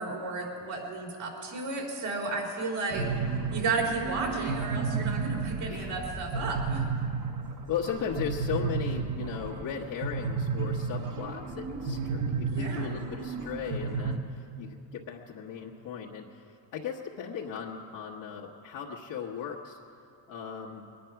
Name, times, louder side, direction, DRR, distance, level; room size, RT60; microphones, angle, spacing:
voice 1, 0.0-3.1 3.5-6.9 12.5-12.9, right 3 dB, 75° right, -1 dB, 3.9 m, -33 dB
sound 1, 2.9-14.2, right 5 dB, 40° right, 1.2 m, -32 dB
voice 2, 7.7-19.8 20.3-20.9, left 7 dB, 75° left, -4 dB, 1.4 m, -37 dB
21.5 x 10.0 x 5.9 m, 2.6 s
cardioid pair, 95°, 47 cm